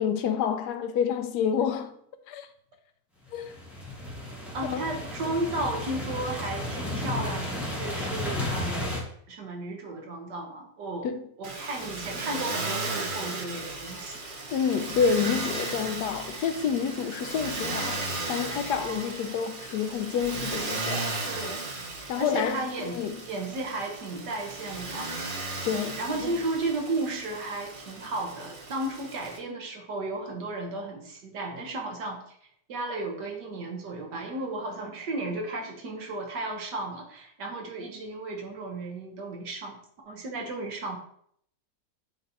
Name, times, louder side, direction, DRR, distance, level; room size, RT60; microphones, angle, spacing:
voice 1, 0.0-2.0 2.3-2.5 3.3-3.5 4.6-4.9 11.0-11.2 14.5-21.1 22.1-23.2 25.6-26.3, left 7 dB, 75° left, 1.2 m, -28 dB
sound 1, 3.4-9.0, left 1 dB, ahead, 1.2 m, -33 dB
voice 2, 4.5-9.0 9.3-11.1 11.4-14.2 18.7-19.1 21.3-21.7 22.2-25.1 26.0-32.4 32.7-39.8 40.1-41.0, right 2 dB, 85° right, 1.9 m, -34 dB
Motor vehicle (road), 11.4-29.4, right 2 dB, 40° right, 0.9 m, -35 dB
8.5 x 3.0 x 4.0 m
omnidirectional pair, 1.8 m